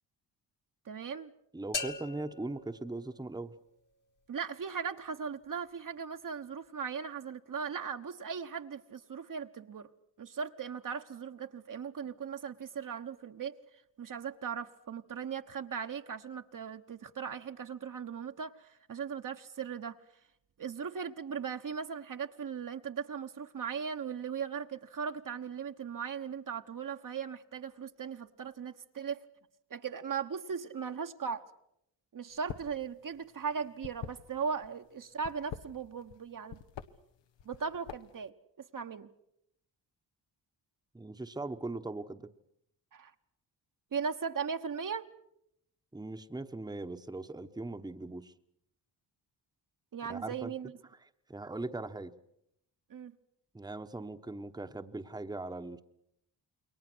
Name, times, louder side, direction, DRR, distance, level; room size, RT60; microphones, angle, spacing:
voice 1, 0.8-1.3 4.3-9.9 10.2-13.6 14.0-20.0 20.6-29.2 29.7-31.4 32.1-36.6 37.4-39.1 42.9-43.1 43.9-45.1 49.9-50.7 52.9-53.1, right 6 dB, 45° right, 1.2 m, -38 dB
voice 2, 1.5-3.5 40.9-42.3 45.9-48.3 50.0-50.5 51.3-52.1 53.5-55.8, right 2 dB, 10° right, 1.1 m, -40 dB
sound 1, 1.7-3.7, left 5 dB, 45° left, 1.8 m, -41 dB
sound 2, 32.3-32.8 33.1-34.7 35.2-36.2 36.5-36.9 37.4-38.2, left 9 dB, 75° left, 1.3 m, -43 dB
28.5 x 22.0 x 6.2 m
cardioid pair, 90°, 43 cm